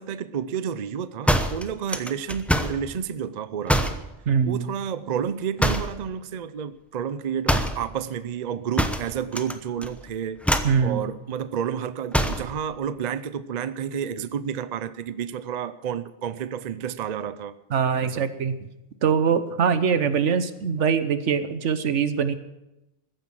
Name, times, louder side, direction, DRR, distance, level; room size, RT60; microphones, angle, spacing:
voice 1, 0.0-4.0 4.5-10.4 10.8-17.5 18.0-18.3, right 8 dB, 45° right, 14 dB, 0.6 m, -30 dB
sound 1, 1.3-2.8 3.7-4.1 5.6-6.0 7.5-7.8 8.8-9.5 9.8-10.1 10.4-10.8 12.1-12.5, equal, ahead, 0.7 m, -24 dB
voice 2, 4.3-4.7 10.6-11.0 17.7-18.6 19.0-22.3, right 6 dB, 75° right, 12 dB, 1.3 m, -23 dB
14.5 x 10.0 x 7.6 m, 0.95 s
omnidirectional pair, 1.2 m